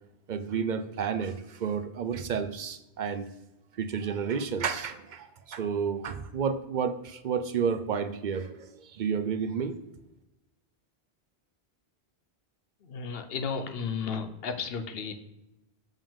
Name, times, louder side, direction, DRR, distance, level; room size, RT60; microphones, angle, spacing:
voice 1, 0.3-3.3 3.8-9.8, right 6 dB, 55° right, 10 dB, 0.6 m, -31 dB
voice 2, 12.8-15.1, left 5 dB, 65° left, 8 dB, 1.0 m, -33 dB
7.0 x 5.4 x 3.6 m, 0.91 s
omnidirectional pair, 1.1 m